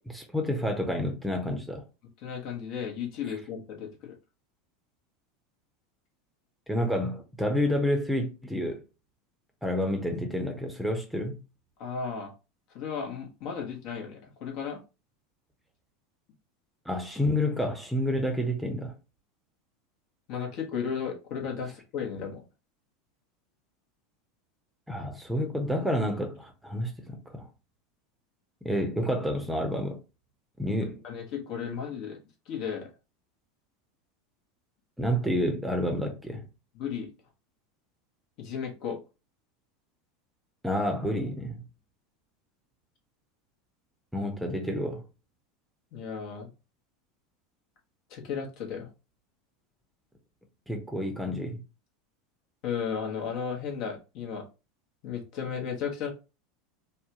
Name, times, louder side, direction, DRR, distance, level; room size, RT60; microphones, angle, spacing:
voice 1, 0.0-1.8 6.7-8.8 9.6-11.4 16.8-18.9 24.9-27.5 28.6-30.0 30.6-31.0 35.0-36.4 40.6-41.6 44.1-45.0 50.7-51.6, equal, 5° right, 0.8 m, -29 dB
voice 2, 2.2-4.2 11.8-12.3 12.7-14.8 20.3-22.4 30.6-30.7 31.0-32.2 32.5-32.9 36.7-37.1 38.4-39.0 45.9-46.5 48.1-48.9 52.6-54.4 55.0-56.1, left 7 dB, 50° left, 1.0 m, -34 dB
3.4 x 2.2 x 2.9 m
figure-of-eight pair, 80°, 0 cm